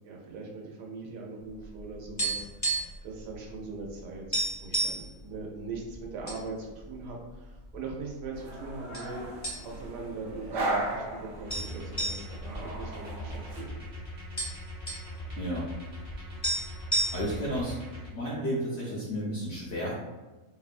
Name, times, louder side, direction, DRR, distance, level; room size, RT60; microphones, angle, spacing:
voice 1, 0.0-2.4 2.7-4.2 4.6-9.3 9.6-13.8, right 3 dB, 85° right, -1 dB, 1.2 m, -41 dB
sound 1, 1.6-3.1 3.3-3.5 3.9-4.0 4.3-5.1 5.7-6.4 6.8-6.9 7.6-8.2 8.9-9.1 9.4-10.0 10.3-10.4 11.5-13.6 13.9-14.0 14.1-15.1 16.1-16.2 16.4-17.5, right 2 dB, 20° left, 0.4 m, -31 dB
sound 2, 8.3-13.6, right 2 dB, 70° right, 0.7 m, -36 dB
sound 3, 11.4-18.1, equal, 45° right, 0.4 m, -41 dB
voice 2, 15.4-15.7 17.1-17.8 18.1-19.9, equal, 70° left, -6 dB, 0.7 m, -32 dB
2.9 x 2.1 x 2.4 m, 1.2 s
omnidirectional pair, 1.7 m